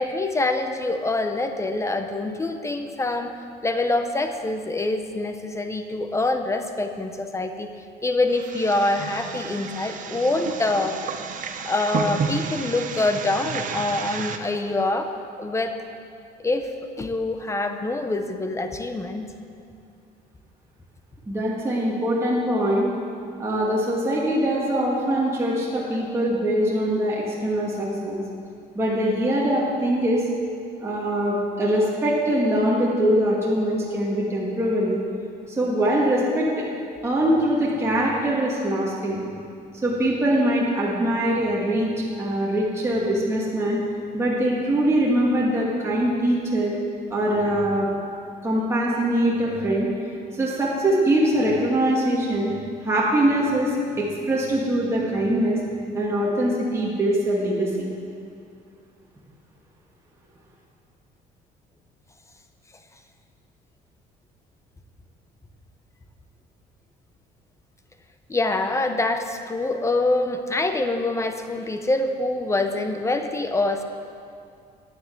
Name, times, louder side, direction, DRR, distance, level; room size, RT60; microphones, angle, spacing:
voice 1, 0.0-3.3 3.6-7.7 8.0-11.0 11.7-15.1 15.4-15.8 16.4-16.7 17.0-19.3 68.3-73.8, left 2 dB, 15° left, 7 dB, 0.9 m, -25 dB
sound 1, 8.3-14.4, right 6 dB, 50° right, 0.9 m, -31 dB
voice 2, 21.3-22.9 23.4-28.2 28.7-30.2 30.8-35.0 35.6-36.5 37.0-39.2 39.8-43.8 44.1-46.8 47.1-47.9 48.4-49.9 50.3-52.5 52.8-55.6 55.9-57.9, right 1 dB, 15° right, -6 dB, 2.3 m, -22 dB
10.0 x 9.1 x 7.9 m, 2.4 s
cardioid pair, 110°, 17 cm